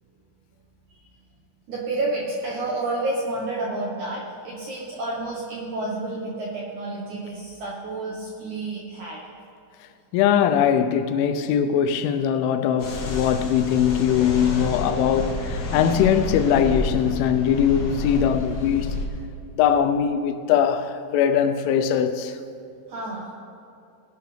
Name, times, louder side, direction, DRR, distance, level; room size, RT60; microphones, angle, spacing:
voice 1, 1.7-9.2 22.9-23.4, right 2 dB, 75° right, 1.7 m, -30 dB
voice 2, 10.1-19.0 19.6-22.4, left 8 dB, 90° left, 3.2 m, -21 dB
sound 1, 12.8-19.1, left 2 dB, 70° left, 1.5 m, -29 dB
20.5 x 11.0 x 3.3 m
omnidirectional pair, 5.5 m